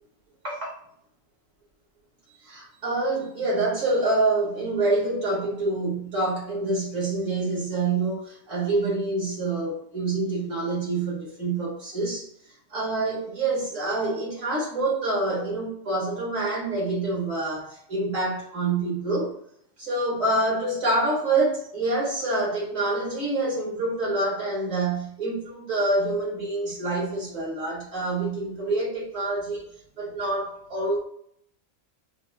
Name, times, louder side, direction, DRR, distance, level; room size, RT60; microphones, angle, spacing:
voice 1, 0.4-0.8 2.4-12.3 12.7-19.3 19.8-29.6 30.0-31.0, right 2 dB, 70° right, -5 dB, 2.0 m, -26 dB
6.1 x 2.1 x 3.3 m, 0.69 s
omnidirectional pair, 1.3 m